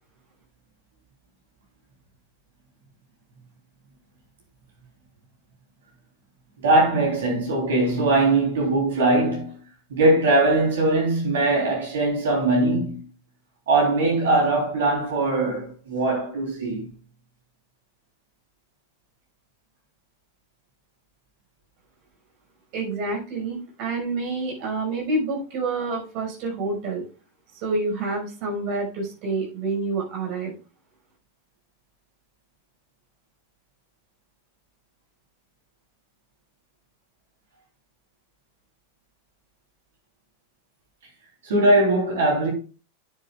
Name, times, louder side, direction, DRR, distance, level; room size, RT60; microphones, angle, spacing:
voice 1, 6.6-9.6 9.9-13.0 13.7-16.8 41.4-42.5, right 2 dB, 60° right, 3.5 m, -21 dB
voice 2, 22.7-27.0 27.5-30.5, right 3 dB, 45° right, 5.5 m, -28 dB
10.0 x 9.3 x 2.4 m
figure-of-eight pair, 90°, 0 cm